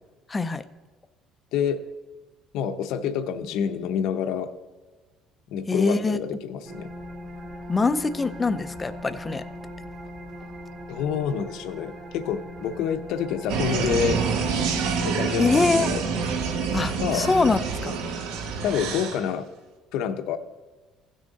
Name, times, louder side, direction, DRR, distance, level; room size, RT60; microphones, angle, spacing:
voice 1, 0.3-0.6 5.7-6.2 7.7-9.4 15.4-15.9 16.7-18.0, left 3 dB, 15° left, 12 dB, 0.4 m, -23 dB
voice 2, 1.5-1.8 2.5-4.5 5.5-6.9 10.9-14.2 15.0-16.0 17.0-17.3 18.6-19.5 19.9-20.4, left 8 dB, 65° left, 9 dB, 0.7 m, -27 dB
sound 1, 6.6-15.9, equal, 30° right, 1.2 m, -40 dB
sound 2, 13.5-19.2, right 5 dB, 85° right, 1.1 m, -27 dB
16.0 x 6.3 x 4.0 m, 1.3 s
cardioid pair, 175°, 0 cm